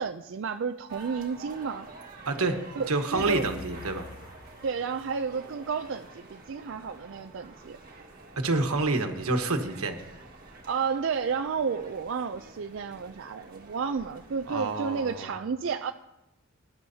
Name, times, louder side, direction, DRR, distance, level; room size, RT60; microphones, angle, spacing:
voice 1, 0.0-1.9 2.8-3.5 4.6-7.8 10.7-15.9, right 6 dB, 60° right, 7 dB, 0.4 m, -31 dB
sound 1, 0.9-15.3, right 3 dB, 45° right, 1.6 m, -49 dB
voice 2, 2.3-2.6 2.9-4.1 8.4-10.0 14.5-15.3, right 3 dB, 85° right, 6 dB, 1.2 m, -28 dB
sound 2, 3.2-7.7, left 5 dB, 40° left, 0.4 m, -48 dB
19.5 x 11.5 x 2.8 m, 0.96 s
head